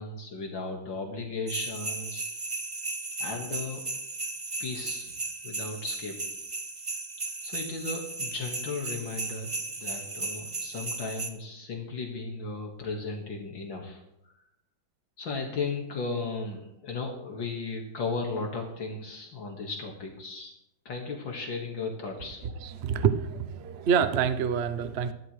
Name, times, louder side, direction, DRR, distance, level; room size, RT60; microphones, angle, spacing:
voice 1, 0.0-2.2 3.2-3.9 4.6-5.1 5.4-6.2 7.4-14.3 15.2-20.5 20.9-22.4, left 3 dB, 70° left, 0 dB, 2.5 m, -35 dB
sound 1, 1.5-11.3, right 3 dB, 30° right, 0.6 m, -35 dB
voice 2, 22.6-25.1, right 7 dB, 75° right, 11 dB, 0.6 m, -27 dB
24.0 x 12.0 x 3.3 m, 0.84 s
omnidirectional pair, 2.2 m